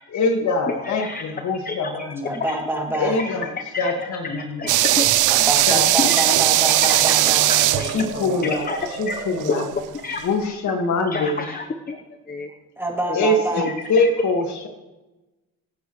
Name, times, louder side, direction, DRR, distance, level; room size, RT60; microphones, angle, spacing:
voice 1, 0.1-2.4 3.0-4.6 5.7-6.4 7.8-8.7 9.0-9.7 10.2-11.5 13.1-14.7, left 2 dB, 70° left, 4 dB, 1.9 m, -24 dB
voice 2, 0.7-1.2 1.6-1.8 2.5-2.6 3.2-3.3 3.7-3.9 4.6-5.1 5.4-5.5 6.0-6.3 6.8-7.2 7.5-7.9 8.7-8.8 9.1-9.2 9.5-9.7 10.0-10.2 11.1-12.0 12.3-12.5 13.6-14.1, left 4 dB, 30° left, 6 dB, 1.0 m, -29 dB
voice 3, 2.2-3.2 5.3-8.5 9.4-9.6 12.8-13.7, right 1 dB, 10° right, 0 dB, 2.7 m, -27 dB
sound 1, 4.7-9.7, right 4 dB, 40° right, 2.0 m, -35 dB
sound 2, 4.7-9.7 10.0-10.1, right 15 dB, 85° right, 0.6 m, -19 dB
25.0 x 8.7 x 3.2 m, 1.1 s
cardioid pair, 90°, 30 cm